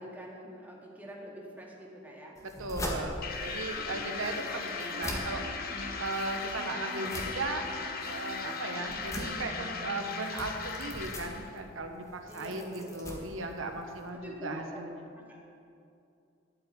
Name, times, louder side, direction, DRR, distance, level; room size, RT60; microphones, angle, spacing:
voice 1, 0.0-2.4 12.3-13.3 14.1-14.8 15.2-15.4, equal, 10° right, -3 dB, 2.1 m, -46 dB
sound 1, 2.3-14.1, equal, 15° left, 1.7 m, -42 dB
voice 2, 2.4-5.4 6.0-7.7 8.0-15.0, right 2 dB, 90° right, 4 dB, 1.1 m, -37 dB
sound 2, 3.2-11.5, left 5 dB, 50° left, 1.0 m, -38 dB
sound 3, 3.7-10.6, equal, 30° right, 2.8 m, -45 dB
12.5 x 6.2 x 9.3 m, 2.5 s
head